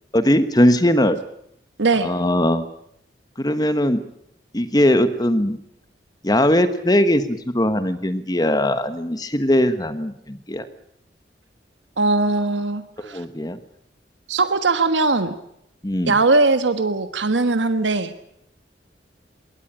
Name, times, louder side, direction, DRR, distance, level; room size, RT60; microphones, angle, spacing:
voice 1, 0.1-1.2 2.0-2.6 3.4-4.0 4.5-5.6 6.2-10.7 13.0-13.6 15.8-16.2, left 1 dB, 20° left, 11 dB, 1.2 m, -20 dB
voice 2, 1.8-2.1 12.0-13.2 14.3-15.3 16.1-18.1, right 3 dB, 85° right, 10 dB, 1.4 m, -20 dB
22.0 x 18.0 x 8.8 m, 0.73 s
head